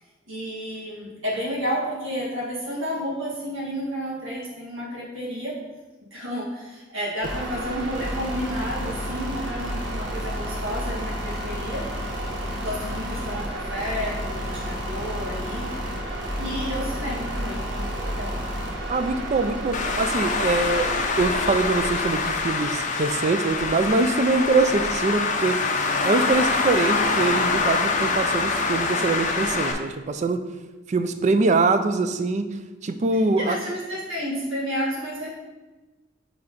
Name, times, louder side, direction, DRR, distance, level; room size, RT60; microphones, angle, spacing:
voice 1, 0.3-5.6 6.0-11.8 12.5-15.7 16.4-18.4 33.4-35.3, equal, 80° right, -5 dB, 1.6 m, -31 dB
sound 1, 7.2-22.2, equal, 60° right, 1.1 m, -31 dB
voice 2, 18.9-25.6 26.0-30.4 30.9-32.5 32.8-33.6, right 3 dB, 35° right, 9 dB, 0.4 m, -23 dB
Traffic noise roadway noise, 19.7-29.7, left 4 dB, 40° left, 0.6 m, -25 dB
5.5 x 3.5 x 5.1 m, 1.2 s
head